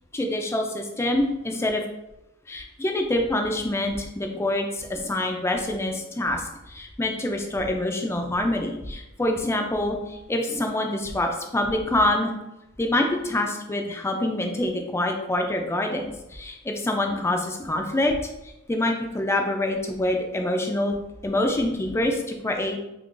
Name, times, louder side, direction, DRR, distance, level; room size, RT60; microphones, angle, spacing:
voice 1, 0.1-1.8 2.5-12.3 12.8-16.0 16.3-18.2 18.7-21.0 21.2-22.8, left 1 dB, 10° left, 3 dB, 0.3 m, -26 dB
3.0 x 2.4 x 3.7 m, 0.92 s
head